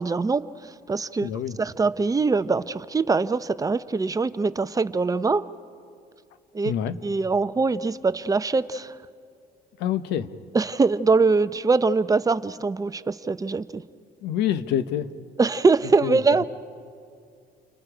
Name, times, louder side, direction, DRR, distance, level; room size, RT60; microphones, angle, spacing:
voice 1, 0.0-1.3 1.6-5.5 6.5-6.7 7.0-9.0 10.5-13.8 15.4-16.4, right 4 dB, 20° right, 13 dB, 0.6 m, -23 dB
voice 2, 1.2-1.6 6.6-7.0 9.8-10.3 14.2-15.1 16.0-16.4, left 10 dB, 90° left, 12 dB, 1.0 m, -27 dB
30.0 x 25.0 x 5.0 m, 2.3 s
cardioid pair, 110°, 17 cm